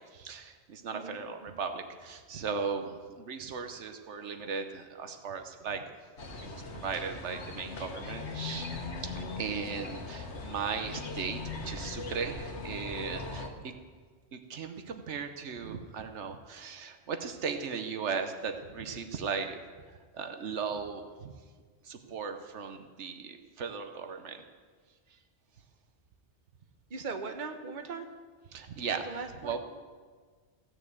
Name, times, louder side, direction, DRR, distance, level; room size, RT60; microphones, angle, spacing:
voice 1, 0.0-5.8 6.4-8.7 9.0-13.7 14.3-19.6 20.1-21.3 21.8-24.4 28.5-29.6, right 5 dB, 85° right, 7 dB, 1.2 m, -37 dB
sound 1, 6.2-13.5, left 3 dB, 80° left, 1.6 m, -39 dB
voice 2, 26.9-28.1 29.0-29.6, right 4 dB, 45° right, 6 dB, 1.1 m, -39 dB
16.0 x 6.5 x 8.0 m, 1.5 s
omnidirectional pair, 1.2 m